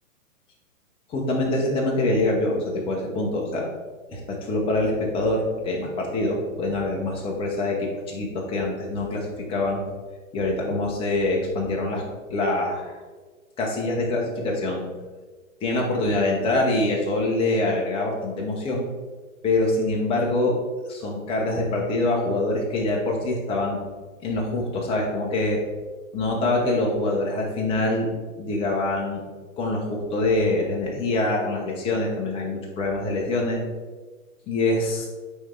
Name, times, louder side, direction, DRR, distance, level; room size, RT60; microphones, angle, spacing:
voice 1, 1.1-3.7 4.1-9.8 10.3-12.0 12.3-13.0 13.6-14.8 15.6-18.8 19.4-20.6 20.9-23.8 24.2-25.6 26.1-28.1 28.4-29.2 29.6-33.6 34.5-35.1, left 2 dB, 15° left, -1 dB, 0.9 m, -25 dB
9.0 x 3.4 x 3.8 m, 1.3 s
hypercardioid pair, 145°, 42 cm